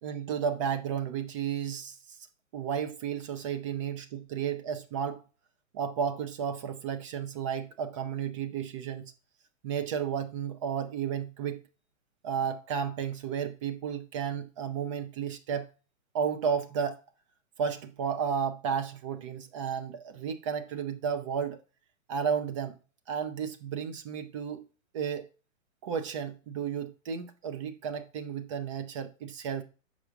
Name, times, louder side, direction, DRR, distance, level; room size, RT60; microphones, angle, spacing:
voice 1, 0.0-2.2 2.5-5.2 5.7-9.1 9.6-11.6 12.2-15.7 16.1-17.0 17.6-21.6 22.1-22.8 23.1-24.7 24.9-25.3 25.8-29.6, right 7 dB, 25° right, 0.5 m, -33 dB
6.8 x 4.9 x 4.7 m
figure-of-eight pair, 120°, 39 cm